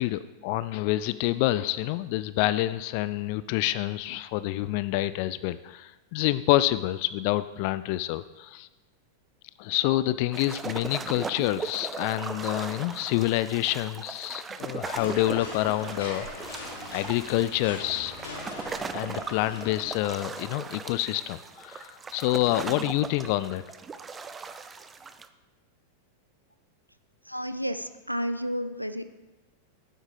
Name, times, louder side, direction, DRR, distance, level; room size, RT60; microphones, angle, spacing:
voice 1, 0.0-8.7 9.6-16.6 16.9-18.2 18.9-23.6, left 16 dB, 45° left, 15 dB, 0.3 m, -27 dB
sound 1, 10.3-25.3, right 5 dB, 15° right, 0.5 m, -38 dB
sound 2, 14.9-20.0, left 3 dB, 65° left, 3.1 m, -41 dB
voice 2, 27.3-29.1, equal, 90° right, 11 dB, 0.5 m, -31 dB
12.0 x 9.1 x 3.7 m, 1.1 s
figure-of-eight pair, 90°, 0 cm